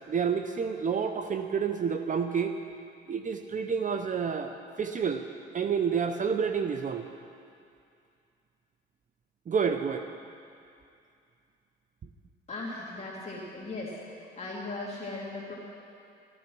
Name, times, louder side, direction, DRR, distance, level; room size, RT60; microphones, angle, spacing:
voice 1, 0.1-2.5 3.1-5.2 5.5-7.1 9.5-10.1, right 6 dB, 40° right, 7 dB, 0.7 m, -29 dB
voice 2, 12.5-14.0 14.4-15.5, left 2 dB, 35° left, -5 dB, 2.5 m, -37 dB
14.0 x 13.0 x 6.2 m, 2.5 s
cardioid pair, 90°, 20 cm